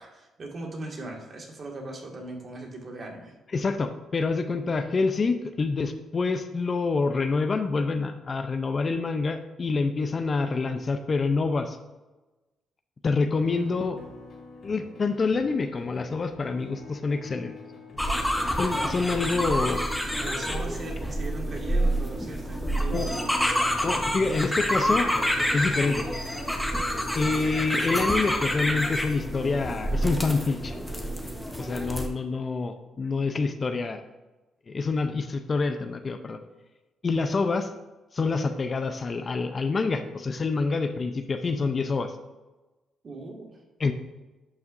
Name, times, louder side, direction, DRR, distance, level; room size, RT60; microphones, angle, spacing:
voice 1, 0.0-3.4 20.2-23.6 43.0-43.5, right 2 dB, 45° right, 1 dB, 1.9 m, -39 dB
voice 2, 3.5-11.8 13.0-14.0 14.6-17.5 18.6-19.8 22.9-23.1 23.8-25.1 25.5-26.1 27.1-30.8 31.6-34.0 34.7-36.4 37.0-37.7 38.1-42.1 43.8-43.9, left 4 dB, 35° left, 8 dB, 0.6 m, -27 dB
sound 1, 13.3-31.5, left 3 dB, 60° left, 2.4 m, -47 dB
sound 2, 18.0-32.1, equal, 5° left, 1.1 m, -28 dB
11.0 x 5.8 x 2.6 m, 1.1 s
cardioid pair, 90°, 0 cm